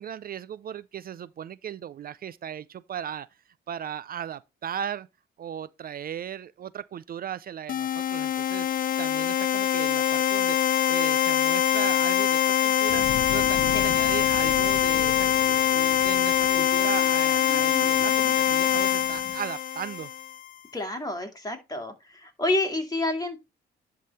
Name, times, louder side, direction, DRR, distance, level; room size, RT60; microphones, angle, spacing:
voice 1, 0.0-3.3 3.7-5.1 5.4-8.7 9.0-20.1, right 9 dB, 50° right, 0.4 m, -37 dB
sound 1, 7.7-20.4, left 10 dB, 45° left, 0.4 m, -23 dB
sound 2, 12.9-17.4 17.9-18.0, left 12 dB, 75° left, 0.7 m, -38 dB
sound 3, 14.4-19.4, equal, 10° right, 4.3 m, -45 dB
voice 2, 20.7-23.4, left 2 dB, 20° left, 2.6 m, -29 dB
11.0 x 3.7 x 4.1 m
cardioid pair, 90°, 20 cm